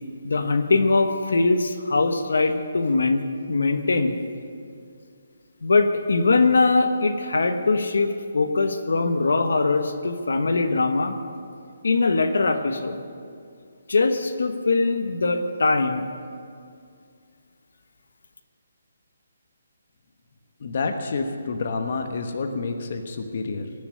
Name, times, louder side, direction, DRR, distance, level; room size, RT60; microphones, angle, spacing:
voice 1, 0.2-4.2 5.6-11.1 11.8-13.0 13.9-16.1, left 3 dB, 80° left, 7 dB, 1.2 m, -22 dB
voice 2, 20.6-23.7, left 4 dB, 50° left, 5 dB, 1.1 m, -28 dB
18.0 x 7.1 x 8.5 m, 2.3 s
hypercardioid pair, 165°, 0 cm